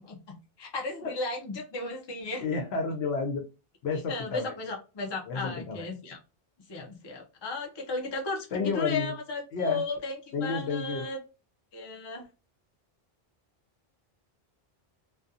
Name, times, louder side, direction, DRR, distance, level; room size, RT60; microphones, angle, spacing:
voice 1, 0.6-2.4 4.1-6.2 6.7-11.2 11.7-12.3, left 3 dB, 35° left, 0.5 m, -35 dB
voice 2, 2.4-3.5 3.8-4.5 5.3-5.9 8.5-9.1 9.5-9.8 10.3-11.1, left 4 dB, 90° left, 0.8 m, -30 dB
2.4 x 2.2 x 2.6 m
omnidirectional pair, 1.0 m